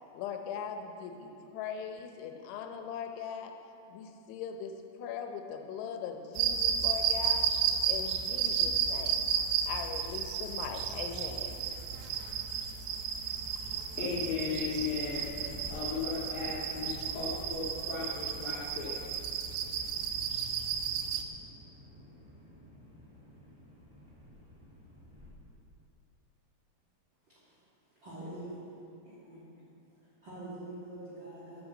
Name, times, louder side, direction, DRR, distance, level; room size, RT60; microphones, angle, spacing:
voice 1, 0.1-3.5 3.9-7.5 7.8-9.3 9.7-11.6, left 7 dB, 80° left, 5 dB, 3.2 m, -40 dB
sound 1, 6.4-21.2, right 7 dB, 80° right, 2.5 m, -33 dB
voice 2, 13.6-15.4 15.7-19.0, left 5 dB, 50° left, -9 dB, 2.9 m, -36 dB
sound 2, 13.9-25.3, left 1 dB, 10° right, 2.5 m, -51 dB
voice 3, 27.2-27.6 28.0-28.6 29.0-29.7 30.2-31.7, right 1 dB, 30° right, -9 dB, 2.4 m, -45 dB
12.0 x 10.0 x 7.4 m, 2.7 s
omnidirectional pair, 5.5 m